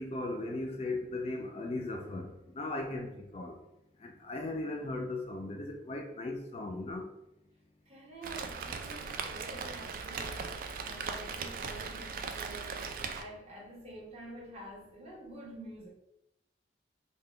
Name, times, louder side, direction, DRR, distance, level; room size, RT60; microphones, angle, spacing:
voice 1, 0.0-3.6 4.0-7.1, left 2 dB, 35° left, 2 dB, 0.3 m, -37 dB
voice 2, 7.9-15.9, right 1 dB, 35° right, -4 dB, 1.0 m, -48 dB
Rain, 8.2-13.2, right 5 dB, 50° right, 0.3 m, -39 dB
3.5 x 2.2 x 3.3 m, 0.86 s
head